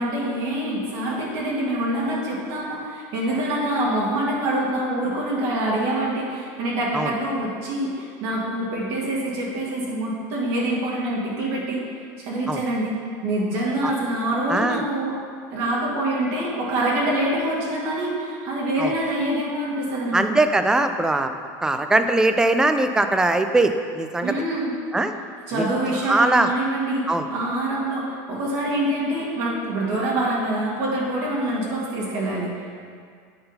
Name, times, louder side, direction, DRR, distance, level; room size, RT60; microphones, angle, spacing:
voice 1, 0.0-11.8 12.2-12.9 13.2-15.1 15.5-20.2 24.2-24.7 25.5-27.0 27.3-32.5, right 1 dB, 60° right, -5 dB, 2.1 m, -25 dB
voice 2, 14.5-14.8 18.8-18.9 20.1-21.3 21.6-24.3 24.9-25.1 25.5-25.7 26.1-26.5 27.1-27.3, right 2 dB, 5° right, 8 dB, 0.4 m, -20 dB
8.9 x 3.8 x 5.5 m, 2.1 s
supercardioid pair, 130°, 10 cm